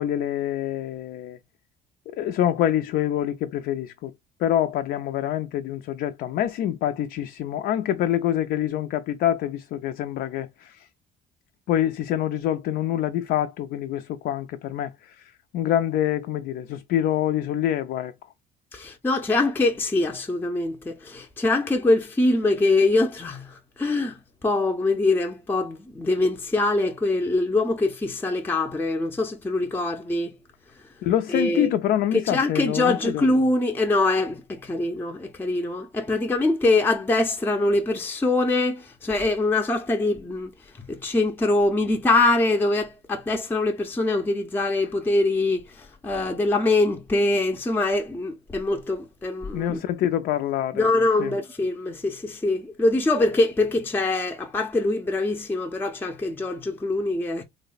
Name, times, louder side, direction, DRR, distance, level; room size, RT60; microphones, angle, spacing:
voice 1, 0.0-1.4 2.2-4.1 4.4-10.9 11.7-18.1 31.0-33.3 49.5-50.9 51.2-51.4, left 11 dB, 70° left, 0.4 m, -26 dB
voice 2, 18.7-30.3 31.3-31.7 32.1-40.5 40.8-49.8 50.7-57.4, left 2 dB, 10° left, 0.5 m, -23 dB
3.1 x 2.1 x 3.8 m
cardioid pair, 110°, 17 cm